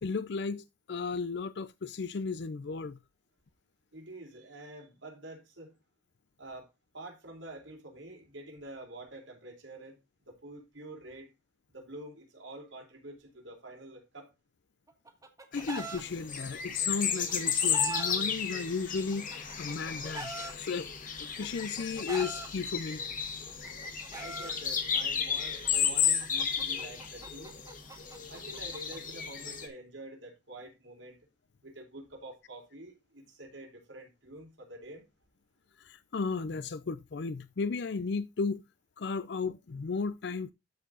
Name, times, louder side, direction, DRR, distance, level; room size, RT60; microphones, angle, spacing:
voice 1, 0.0-3.0 15.5-20.9 21.2-23.0 35.8-38.6 39.0-40.5, left 4 dB, 60° left, 0.5 m, -34 dB
voice 2, 3.9-5.7 6.4-10.0 10.3-11.3 11.7-14.3 24.1-27.6 28.3-31.2 31.6-35.1, right 1 dB, 90° right, 4.0 m, -47 dB
Chicken rooster, 14.9-16.0 17.1-18.1 19.1-20.5 21.4-22.5 23.5-24.5 25.6-29.0, right 3 dB, 20° right, 1.5 m, -41 dB
sound 1, 15.5-29.7, left 7 dB, 45° left, 1.9 m, -33 dB
13.0 x 4.6 x 3.8 m
head